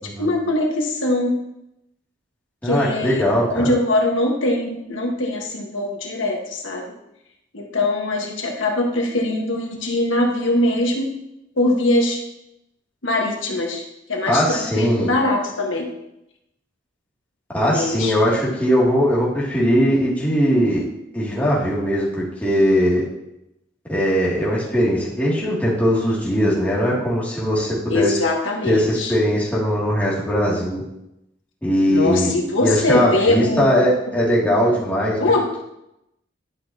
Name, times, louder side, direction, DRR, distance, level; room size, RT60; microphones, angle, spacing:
voice 1, 0.2-1.3 2.6-3.3 3.5-6.9 7.5-11.1 11.6-12.2 13.0-15.9 17.7-18.1 27.9-29.1 31.9-33.8 35.2-35.5, left 2 dB, 85° left, 1 dB, 1.5 m, -22 dB
voice 2, 2.6-3.7 14.3-15.1 17.5-20.8 21.1-23.0 23.9-28.2 28.6-30.8 31.6-32.3 32.6-35.2, equal, 10° left, -7 dB, 2.5 m, -20 dB
11.5 x 6.0 x 2.9 m, 0.84 s
head